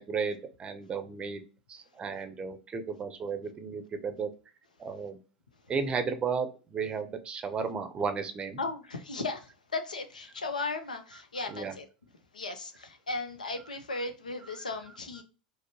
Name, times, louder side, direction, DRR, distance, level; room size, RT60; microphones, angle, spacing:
voice 1, 0.0-1.4 1.7-4.3 4.8-5.2 5.7-8.6 11.5-11.7 14.4-14.6, right 5 dB, 25° right, 0.6 m, -34 dB
voice 2, 8.6-11.9 12.3-15.2, left 3 dB, 80° left, 0.6 m, -36 dB
5.0 x 2.0 x 2.7 m
figure-of-eight pair, 80°, 4 cm